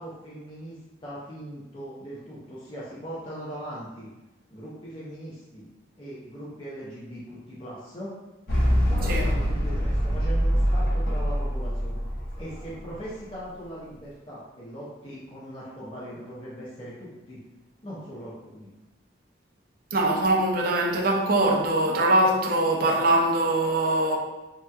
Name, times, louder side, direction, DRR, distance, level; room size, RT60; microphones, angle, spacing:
voice 1, 0.0-4.1 4.5-5.7 6.0-8.1 8.8-12.0 12.3-17.4 17.8-18.7, equal, 30° left, 0.6 m, -40 dB
sound 1, 8.5-13.0, equal, 60° left, 0.8 m, -24 dB
voice 2, 19.9-24.2, right 1 dB, 55° right, 0.5 m, -22 dB
3.3 x 2.8 x 2.3 m
head